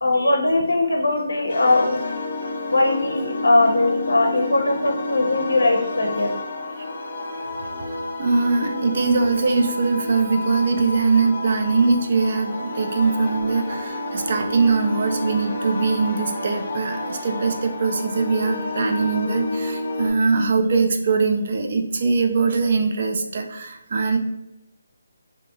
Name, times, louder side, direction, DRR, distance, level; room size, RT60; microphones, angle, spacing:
voice 1, 0.0-2.0 2.7-6.3, left 2 dB, 75° left, 1 dB, 0.5 m, -20 dB
sound 1, 1.5-20.1, left 2 dB, 60° left, 0.9 m, -30 dB
voice 2, 8.2-24.2, right 4 dB, 50° right, 4 dB, 0.4 m, -21 dB
2.8 x 2.6 x 2.2 m, 0.86 s
figure-of-eight pair, 155°, 0 cm